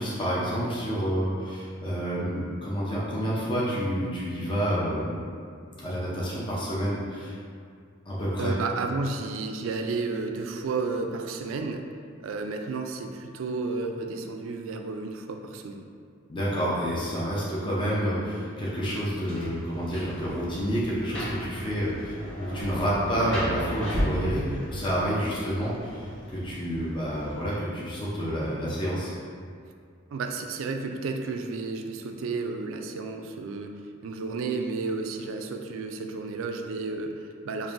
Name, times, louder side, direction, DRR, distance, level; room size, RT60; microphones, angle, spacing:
voice 1, 0.0-5.2 5.8-7.3 8.1-8.5 16.3-29.1, equal, 25° left, -7 dB, 0.6 m, -29 dB
voice 2, 8.4-11.9 12.2-15.8 30.1-33.7 34.0-37.7, right 4 dB, 80° right, 4 dB, 0.3 m, -32 dB
Rain, 18.7-27.8, equal, 65° left, 1.3 m, -36 dB
5.3 x 2.5 x 2.5 m, 2.2 s
head